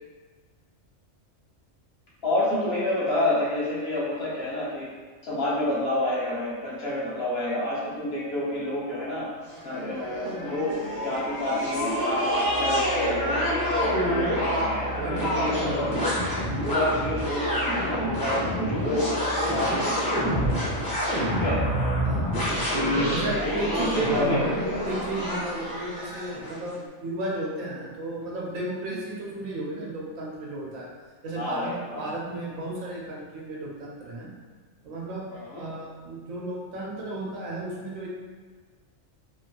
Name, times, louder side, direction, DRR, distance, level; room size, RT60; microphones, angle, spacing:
voice 1, 2.2-4.9 5.2-9.2 9.6-12.8 13.2-13.5 13.8-15.9 16.6-20.1 21.4-21.6 22.8-23.1 23.4-24.5 31.4-32.1 35.3-35.6, left 1 dB, 55° left, -7 dB, 1.0 m, -29 dB
sound 1, 9.5-26.6, equal, 20° left, 0.7 m, -27 dB
voice 2, 15.0-16.3 21.2-21.5 22.0-22.3 23.1-24.5 24.8-30.9 31.2-34.3 34.8-35.3 35.6-38.1, right 2 dB, 85° right, -3 dB, 1.1 m, -33 dB
3.0 x 2.5 x 2.8 m, 1.5 s
omnidirectional pair, 1.4 m